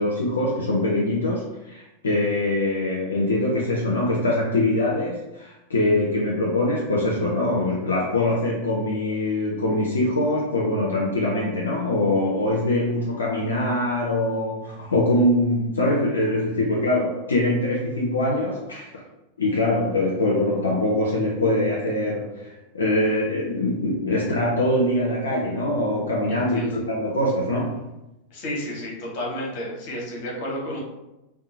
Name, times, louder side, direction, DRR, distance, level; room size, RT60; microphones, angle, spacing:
voice 1, 0.0-19.0 19.4-27.9, left 1 dB, 70° left, -4 dB, 0.4 m, -23 dB
voice 2, 26.3-26.8 28.3-30.8, left 1 dB, 45° left, -2 dB, 0.8 m, -31 dB
2.6 x 2.1 x 2.7 m, 0.96 s
figure-of-eight pair, 90°, 0 cm